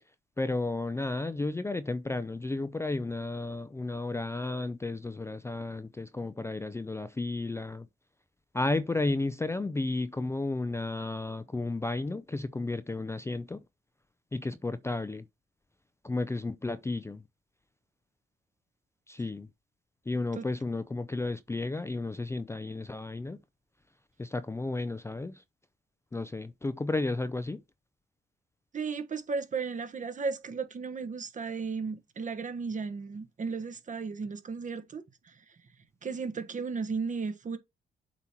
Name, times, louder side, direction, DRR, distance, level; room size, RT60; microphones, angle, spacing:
voice 1, 0.4-7.9 8.5-13.6 14.3-15.2 16.0-17.2 19.1-19.5 20.1-23.4 24.2-25.4 26.1-27.6, left 2 dB, 15° left, 0.4 m, -33 dB
voice 2, 28.7-35.3 36.0-37.6, right 5 dB, 40° right, 1.2 m, -35 dB
8.0 x 2.9 x 5.8 m
cardioid pair, 90°, 20 cm